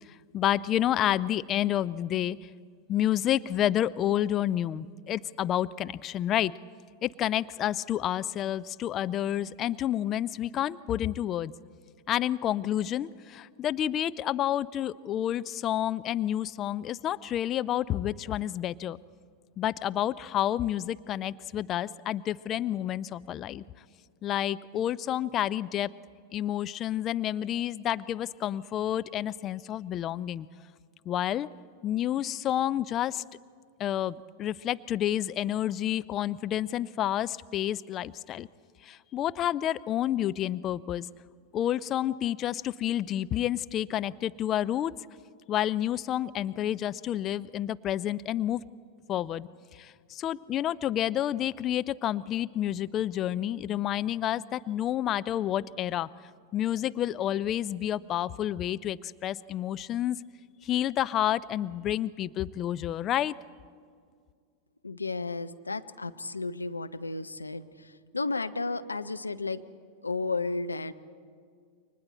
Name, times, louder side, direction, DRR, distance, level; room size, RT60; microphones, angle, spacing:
voice 1, 0.3-2.5 2.9-6.5 7.0-11.5 12.1-19.0 19.6-23.6 24.2-25.9 26.3-30.5 31.1-31.5 31.8-33.2 33.8-38.5 38.8-41.1 41.5-44.9 45.5-48.6 49.1-56.1 56.5-60.2 60.6-63.3, left 11 dB, 30° left, 15 dB, 0.5 m, -29 dB
voice 2, 64.8-69.6 70.0-70.9, left 3 dB, 80° left, 10 dB, 0.7 m, -33 dB
29.0 x 23.5 x 4.3 m, 2.1 s
figure-of-eight pair, 90°, 0 cm